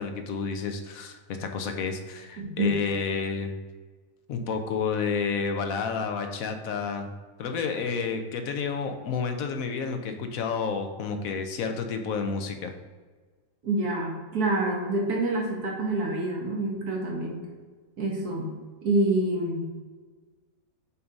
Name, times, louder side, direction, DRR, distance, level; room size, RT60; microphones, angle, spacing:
voice 1, 0.0-3.5 4.3-7.1 7.4-12.7, left 5 dB, 70° left, 6 dB, 1.1 m, -30 dB
voice 2, 2.4-2.7 13.6-17.4 18.0-18.5 18.8-19.7, right 2 dB, 75° right, -1 dB, 1.6 m, -27 dB
6.9 x 2.8 x 5.0 m, 1.4 s
omnidirectional pair, 1.6 m